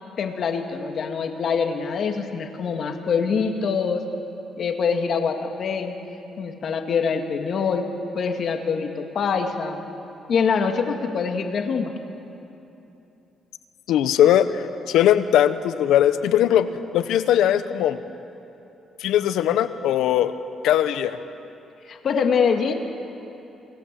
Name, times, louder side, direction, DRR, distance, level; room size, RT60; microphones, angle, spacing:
voice 1, 0.2-4.0 4.6-5.9 6.4-7.9 8.1-9.8 10.3-11.9 21.9-22.7, left 6 dB, 60° left, 4 dB, 2.2 m, -24 dB
voice 2, 13.9-16.7 16.9-18.0 19.0-20.3 20.6-21.2, left 11 dB, 85° left, 12 dB, 1.0 m, -19 dB
27.5 x 19.0 x 7.7 m, 2.9 s
cardioid pair, 90°, 0 cm